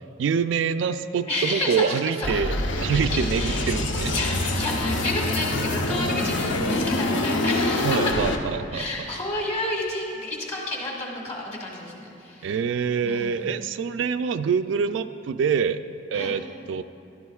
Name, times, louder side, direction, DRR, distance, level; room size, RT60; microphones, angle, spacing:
voice 1, 0.2-4.2 7.8-8.8 12.4-15.8 16.1-16.8, right 6 dB, 70° right, 10 dB, 0.3 m, -25 dB
voice 2, 1.3-2.3 2.9-8.0 8.7-12.6 13.0-13.5 16.1-16.3, left 2 dB, 35° left, -1 dB, 1.8 m, -31 dB
sound 1, 2.2-8.4, left 2 dB, 80° left, 0.7 m, -25 dB
14.0 x 12.0 x 2.4 m, 2.6 s
head